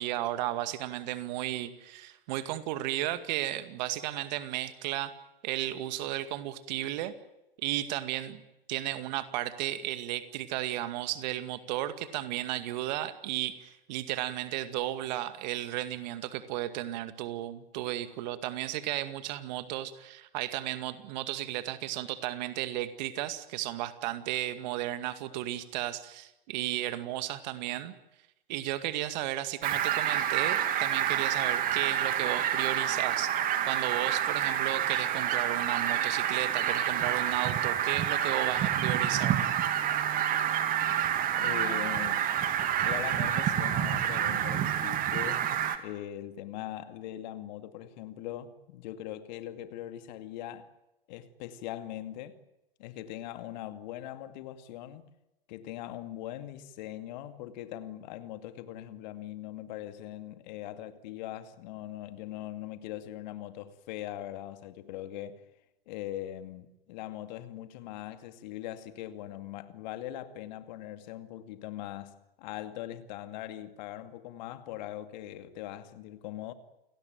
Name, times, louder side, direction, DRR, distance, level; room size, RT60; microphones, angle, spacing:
voice 1, 0.0-5.1 5.4-7.1 7.6-8.4 8.7-27.9 28.5-39.4, right 14 dB, 50° right, 2.2 m, -34 dB
Fowl, 29.6-45.8, right 10 dB, 30° right, 2.4 m, -28 dB
voice 2, 41.4-42.2 42.8-45.4 45.8-50.7 51.1-52.4 52.8-55.1 55.5-65.4 65.9-76.5, left 13 dB, 50° left, 2.4 m, -41 dB
29.0 x 18.0 x 9.3 m
hypercardioid pair, 105°, 29 cm